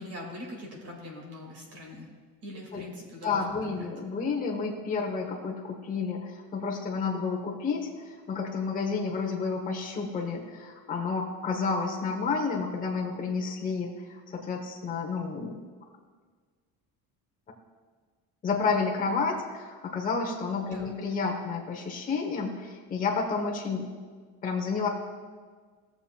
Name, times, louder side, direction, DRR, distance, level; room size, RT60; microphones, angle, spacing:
voice 1, 0.0-2.1 2.4-3.9 20.7-21.0, left 1 dB, 45° right, -1 dB, 1.9 m, -42 dB
voice 2, 3.2-15.6 18.4-23.9 24.4-24.9, left 4 dB, 25° left, 0 dB, 0.9 m, -30 dB
18.0 x 7.0 x 2.2 m, 1.5 s
cardioid pair, 175°, 35 cm